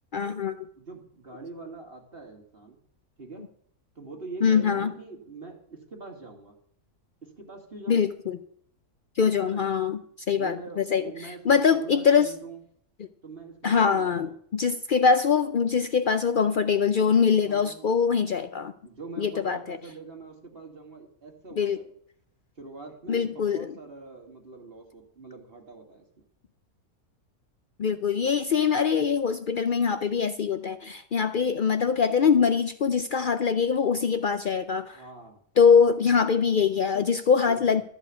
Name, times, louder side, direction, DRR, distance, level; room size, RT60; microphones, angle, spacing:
voice 1, 0.1-0.5 4.4-4.9 7.9-8.4 9.2-10.0 10.3-12.3 13.6-18.7 19.2-19.8 21.6-21.8 23.1-23.7 27.8-35.0 35.6-37.8, left 6 dB, 75° left, 10 dB, 0.4 m, -23 dB
voice 2, 0.8-2.8 3.2-3.5 4.0-6.5 7.2-8.1 9.4-9.7 10.4-12.6 13.2-14.4 17.4-17.9 18.8-21.9 22.6-26.1 34.9-35.4 37.5-37.8, right 3 dB, 40° right, 2 dB, 2.3 m, -43 dB
13.5 x 5.0 x 8.3 m, 0.64 s
omnidirectional pair, 1.6 m